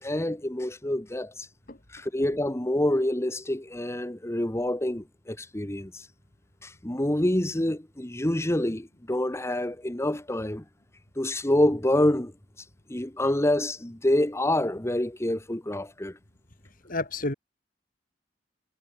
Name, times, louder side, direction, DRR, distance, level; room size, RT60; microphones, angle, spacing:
voice 1, 0.0-1.5 1.9-6.0 6.6-10.6 11.2-12.3 12.9-16.2, left 1 dB, 15° left, 1.3 m, -27 dB
voice 2, 16.8-17.3, left 2 dB, 50° left, 3.8 m, -30 dB
head